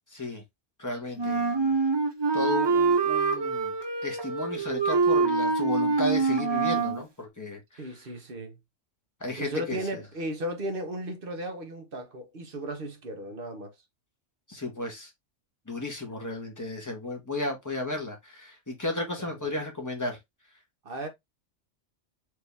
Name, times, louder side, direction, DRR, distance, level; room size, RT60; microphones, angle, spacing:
voice 1, 0.1-0.4 0.8-1.7 2.3-3.7 4.0-8.0 9.2-10.0 14.5-15.1 15.7-20.2, left 2 dB, 15° left, 1.3 m, -34 dB
Wind instrument woodwind instrument, 1.2-7.0, right 4 dB, 30° right, 0.6 m, -25 dB
voice 2, 7.8-8.6 9.4-13.7 19.2-19.5 20.8-21.1, right 1 dB, 50° right, 1.2 m, -35 dB
4.7 x 2.9 x 3.4 m
omnidirectional pair, 1.2 m